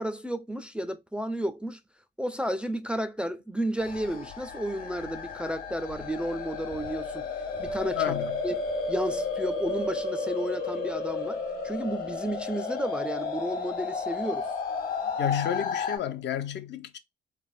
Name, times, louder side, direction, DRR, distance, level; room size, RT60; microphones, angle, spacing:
voice 1, 0.0-1.8 2.2-7.3 7.6-8.0 8.4-8.6 8.9-11.4 11.6-14.5, right 1 dB, 5° right, 0.3 m, -32 dB
sound 1, 3.8-16.0, left 4 dB, 45° left, 1.0 m, -32 dB
voice 2, 7.9-8.4 15.2-17.0, left 10 dB, 65° left, 0.5 m, -31 dB
3.3 x 2.0 x 2.4 m
cardioid pair, 90°, 20 cm